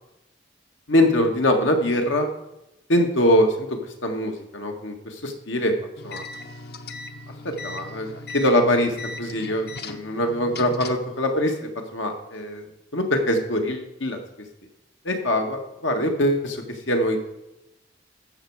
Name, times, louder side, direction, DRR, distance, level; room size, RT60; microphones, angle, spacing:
voice 1, 0.9-2.3 2.9-5.7 6.0-6.2 7.4-12.6 12.9-14.2 15.0-17.2, left 1 dB, 90° left, 3 dB, 1.8 m, -23 dB
sound 1, 6.0-11.1, left 2 dB, 55° left, 0.8 m, -38 dB
13.0 x 7.8 x 4.8 m, 0.90 s
head